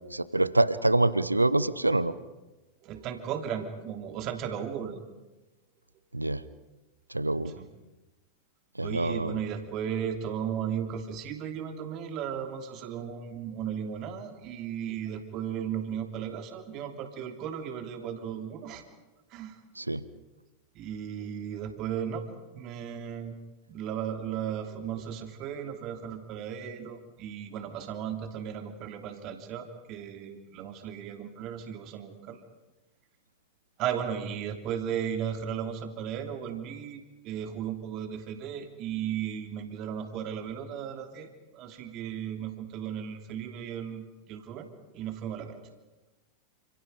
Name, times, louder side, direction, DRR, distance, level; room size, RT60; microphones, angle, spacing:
voice 1, 0.1-2.1 6.1-6.4 7.1-7.5 8.8-9.4 19.8-20.0, right 2 dB, 85° right, 18 dB, 0.9 m, -25 dB
voice 2, 2.8-5.0 7.4-7.7 8.8-18.8 19.3-19.6 20.7-23.4 23.7-32.4 33.8-44.7 44.9-45.6, right 8 dB, 40° right, 5 dB, 3.0 m, -35 dB
30.0 x 28.0 x 5.2 m, 1.1 s
figure-of-eight pair, 90°, 0 cm